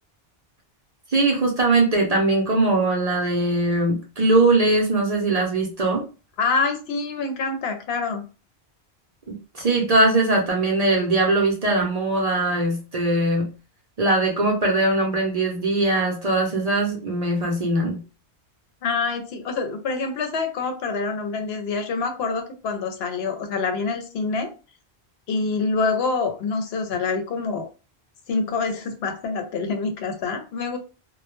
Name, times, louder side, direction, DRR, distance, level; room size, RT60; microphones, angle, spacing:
voice 1, 1.1-6.0 9.5-13.5 14.0-18.0, right 2 dB, 45° right, 0 dB, 0.6 m, -21 dB
voice 2, 6.4-8.2 18.8-24.5 25.3-27.7 28.3-30.8, left 4 dB, 75° left, 6 dB, 0.8 m, -26 dB
2.2 x 2.1 x 2.9 m, 0.33 s
omnidirectional pair, 1.1 m